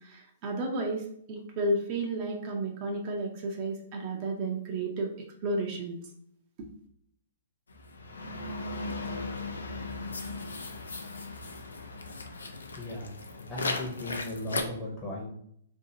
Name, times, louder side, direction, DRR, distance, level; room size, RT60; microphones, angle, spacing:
voice 1, 0.1-1.0 1.3-5.1 5.4-6.0, right 2 dB, 40° right, 2 dB, 0.5 m, -32 dB
sound 1, 7.7-14.6, left 3 dB, 75° left, 0.4 m, -37 dB
voice 2, 12.8-13.1 13.5-15.3, left 1 dB, 10° left, -6 dB, 0.7 m, -37 dB
2.7 x 2.6 x 2.7 m, 0.69 s
figure-of-eight pair, 120°, 0 cm